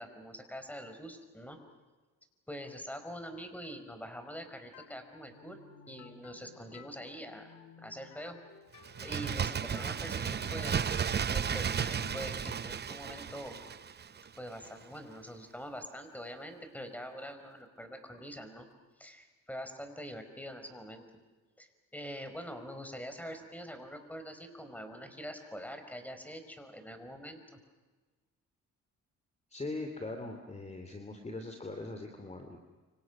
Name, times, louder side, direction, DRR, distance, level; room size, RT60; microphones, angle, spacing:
voice 1, 0.0-1.6 2.5-5.6 5.9-7.5 7.8-8.3 9.0-11.0 11.3-13.6 14.4-18.7 19.0-21.0 21.6-27.4, equal, 5° left, 7 dB, 5.1 m, -44 dB
sound 1, 4.7-14.3, left 9 dB, 85° left, 2.4 m, -55 dB
Bird, 8.8-14.4 14.7-14.8, right 7 dB, 35° right, 0.7 m, -34 dB
voice 2, 29.5-32.6, left 2 dB, 20° left, 5 dB, 3.1 m, -41 dB
29.5 x 26.5 x 6.3 m, 1.3 s
cardioid pair, 90°, 30 cm